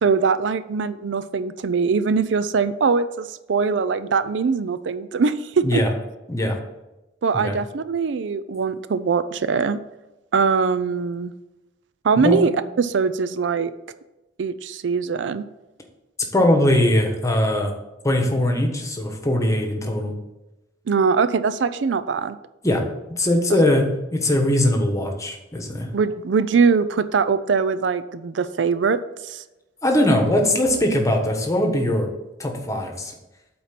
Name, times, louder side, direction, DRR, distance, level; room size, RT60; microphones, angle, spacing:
voice 1, 0.0-5.8 7.2-9.8 10.3-11.3 12.0-12.5 12.8-13.7 14.4-15.4 20.9-22.4 25.9-29.0 29.2-29.4, right 5 dB, 80° right, 13 dB, 0.4 m, -22 dB
voice 2, 5.6-5.9 6.3-6.6 7.3-7.6 12.2-12.4 16.3-17.7 18.0-20.1 22.6-22.8 23.2-25.9 29.8-32.1 32.4-33.1, left 1 dB, 20° left, 3 dB, 1.2 m, -20 dB
8.3 x 4.4 x 5.9 m, 0.99 s
head